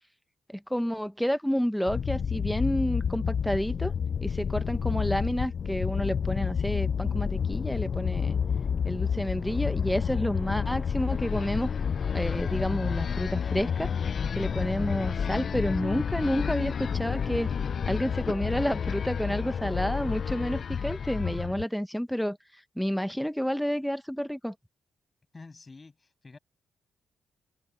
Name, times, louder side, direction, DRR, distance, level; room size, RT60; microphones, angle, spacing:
voice 1, 0.5-3.9 4.2-8.4 8.8-11.7 12.1-13.9 14.4-17.5 17.8-22.4 22.8-24.5, equal, ahead, 1.2 m, -30 dB
sound 1, 1.9-21.6, left 7 dB, 55° left, 0.6 m, -30 dB
voice 2, 25.3-26.4, left 3 dB, 35° left, 7.7 m, -48 dB
supercardioid pair, 55°, 0 cm